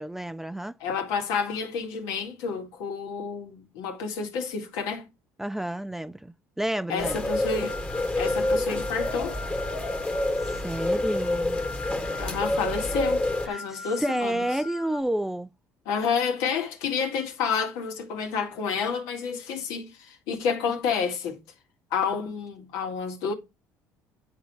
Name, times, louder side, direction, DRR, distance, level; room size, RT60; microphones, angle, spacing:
voice 1, 0.0-0.8 5.4-7.2 10.0-10.1 10.4-11.6 13.5-15.5, right 1 dB, 5° right, 0.3 m, -30 dB
voice 2, 0.8-5.1 6.9-7.8 8.2-9.4 12.2-14.5 15.9-21.4 21.9-23.3, left 6 dB, 85° left, 1.9 m, -29 dB
sound 1, 7.0-13.5, left 1 dB, 20° left, 1.3 m, -28 dB
sound 2, 7.3-15.0, left 3 dB, 55° left, 0.8 m, -41 dB
10.5 x 3.7 x 4.6 m
cardioid pair, 115°, 6 cm